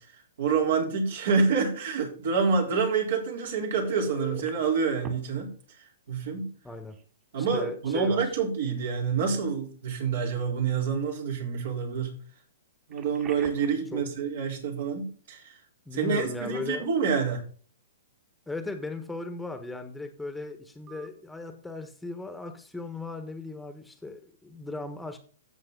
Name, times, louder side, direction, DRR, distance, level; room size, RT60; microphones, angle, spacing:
voice 1, 0.4-5.5 6.1-6.5 7.3-12.1 12.9-15.5 15.9-17.4, right 5 dB, 65° right, 1 dB, 3.9 m, -27 dB
Telephone, 3.8-4.5 5.0-5.1 6.9-7.0 7.4-7.6 12.9-13.8 20.9-21.1, right 2 dB, 30° right, 2.9 m, -40 dB
voice 2, 6.6-6.9 7.4-8.2 13.9-14.0 15.8-16.9 18.5-25.2, left 2 dB, 5° left, 7 dB, 1.4 m, -37 dB
13.0 x 7.5 x 4.0 m, 0.43 s
hypercardioid pair, 120°, 0 cm